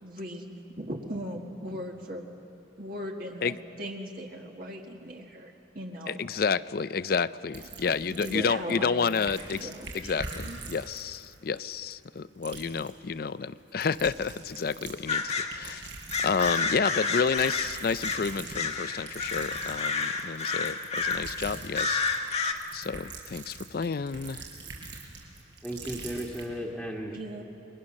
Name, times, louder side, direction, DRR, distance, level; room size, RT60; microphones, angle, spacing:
voice 1, 0.0-2.2 2.8-6.2 8.2-9.1 9.5-10.2 10.4-10.6 27.1-27.4, equal, 50° right, 1 dB, 1.7 m, -38 dB
voice 2, 6.1-9.7 9.9-15.8 16.2-24.4, left 5 dB, 50° left, 16 dB, 0.4 m, -30 dB
sound 1, 7.5-8.7 9.0-12.2 12.4-12.9 13.7-15.2 15.5-16.8 17.2-26.4, right 3 dB, 75° right, 4.6 m, -43 dB
sound 2, 15.1-15.5 16.1-18.3 18.5-21.3 21.8-22.5, left 4 dB, 35° left, 1.3 m, -30 dB
voice 3, 25.6-27.4, equal, ahead, -5 dB, 1.6 m, -35 dB
28.5 x 22.0 x 6.4 m, 2.6 s
head